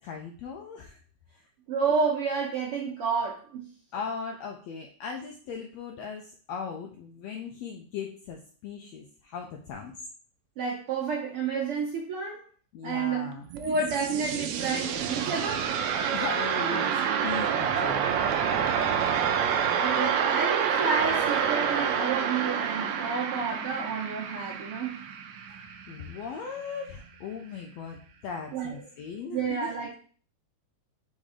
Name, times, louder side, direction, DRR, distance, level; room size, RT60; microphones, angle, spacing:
voice 1, 0.0-1.0 1.3-1.4 3.9-9.9 12.7-13.5 16.1-18.1 25.9-29.7, left 6 dB, 85° left, 2 dB, 1.5 m, -38 dB
voice 2, 1.7-3.6 10.6-12.4 12.8-13.3 13.5-15.7 19.7-25.0 28.5-28.7 29.3-29.9, right 5 dB, 65° right, -3 dB, 1.5 m, -30 dB
sound 1, 13.3-26.2, right 7 dB, 80° right, 1.6 m, -28 dB
5.3 x 3.7 x 5.0 m, 0.43 s
omnidirectional pair, 3.8 m